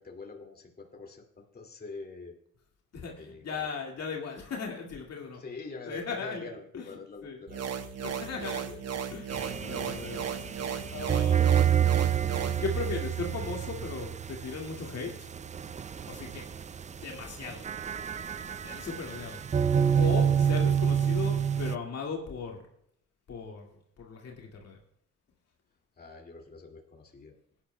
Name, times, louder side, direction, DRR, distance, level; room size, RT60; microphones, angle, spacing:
voice 1, 0.0-2.4 3.2-3.7 5.3-7.7 8.4-8.8 19.1-19.3 26.0-27.4, left 3 dB, 30° left, 2 dB, 2.3 m, -45 dB
voice 2, 2.9-5.4 5.9-6.9 7.2-7.4 8.0-8.7 9.1-10.3 10.9-11.7 12.6-15.3 16.1-16.4 16.9-17.7 18.4-19.4 19.9-22.6 23.3-23.7 24.0-24.8, left 5 dB, 55° left, 0 dB, 2.1 m, -37 dB
sound 1, 7.5-12.6, right 7 dB, 55° right, 1.1 m, -36 dB
sound 2, 9.3-21.8, right 8 dB, 25° right, 0.4 m, -28 dB
18.0 x 10.5 x 2.2 m, 0.71 s
cardioid pair, 90°, 30 cm